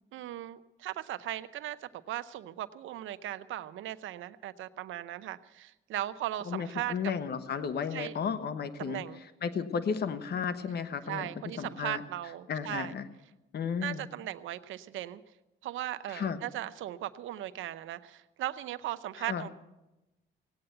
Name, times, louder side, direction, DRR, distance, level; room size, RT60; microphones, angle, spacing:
voice 1, 0.1-7.0 7.9-8.2 8.8-9.2 11.1-12.9 13.8-15.2 15.6-19.5, right 13 dB, 80° right, 12 dB, 0.8 m, -38 dB
voice 2, 6.5-9.0 9.4-11.3 11.6-12.0 12.5-13.0 13.5-14.0 16.1-16.4 19.3-19.5, left 6 dB, 55° left, 11 dB, 1.1 m, -33 dB
17.5 x 8.8 x 7.9 m, 1.0 s
cardioid pair, 90°, 20 cm